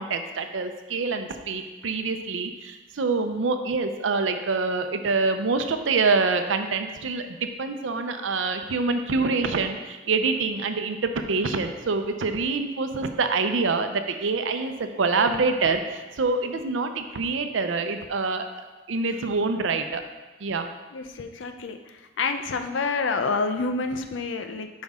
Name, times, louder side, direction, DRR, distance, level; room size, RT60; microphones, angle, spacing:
voice 1, 0.0-7.3 7.6-18.5 18.9-20.0 20.4-20.7, right 4 dB, 80° right, 7 dB, 0.6 m, -26 dB
voice 2, 20.9-24.7, left 4 dB, 75° left, 7 dB, 0.6 m, -28 dB
8.0 x 5.3 x 3.6 m, 1.2 s
head